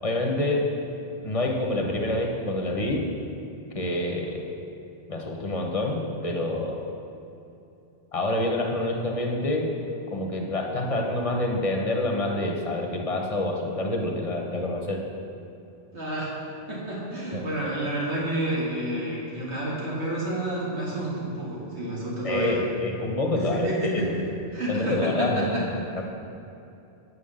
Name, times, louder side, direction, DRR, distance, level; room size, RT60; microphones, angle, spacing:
voice 1, 0.0-0.7 1.2-3.1 3.7-4.4 5.1-6.9 8.1-9.7 10.1-15.0 22.2-24.2 24.7-26.0, left 2 dB, 35° left, 0 dB, 1.0 m, -27 dB
voice 2, 15.9-16.4 16.7-22.6 23.5-24.1 24.5-25.6, right 1 dB, 85° right, -6 dB, 2.3 m, -29 dB
7.9 x 5.7 x 6.6 m, 2.7 s
omnidirectional pair, 1.1 m